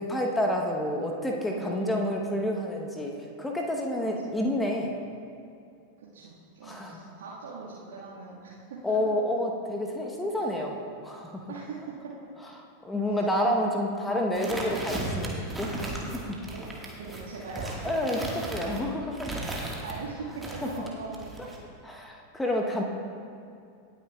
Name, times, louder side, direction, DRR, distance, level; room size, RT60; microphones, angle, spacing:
voice 1, 0.0-4.9 6.6-7.0 8.8-10.8 11.0-11.5 12.8-15.7 16.1-16.4 17.8-19.4 21.8-22.8, left 1 dB, 10° left, 1 dB, 1.0 m, -29 dB
voice 2, 1.5-2.0 3.9-4.3 6.0-8.8 10.3-10.5 11.5-11.8 12.0-12.1 13.1-13.2 16.5-16.6 17.0-17.9 19.8-21.3, right 4 dB, 60° right, -8 dB, 1.7 m, -41 dB
sound 1, 14.3-20.0 20.4-21.6, right 2 dB, 10° right, 1.6 m, -36 dB
18.0 x 9.1 x 2.3 m, 2.4 s
figure-of-eight pair, 90°, 0 cm